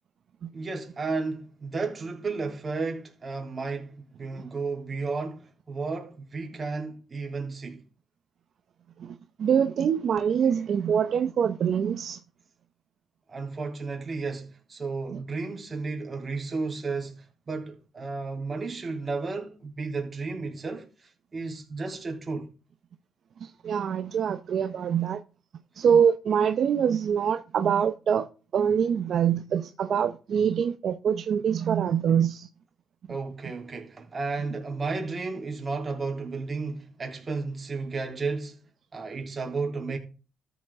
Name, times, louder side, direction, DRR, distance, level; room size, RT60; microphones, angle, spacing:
voice 1, 0.5-7.8 13.3-20.9 21.3-22.5 33.1-38.6 38.9-40.0, right 4 dB, 35° right, 3.5 m, -33 dB
voice 2, 9.0-12.2 15.1-15.2 23.4-25.2 25.8-28.3 28.5-32.5, right 8 dB, 60° right, 0.8 m, -24 dB
13.5 x 7.1 x 3.7 m
cardioid pair, 90°, 0 cm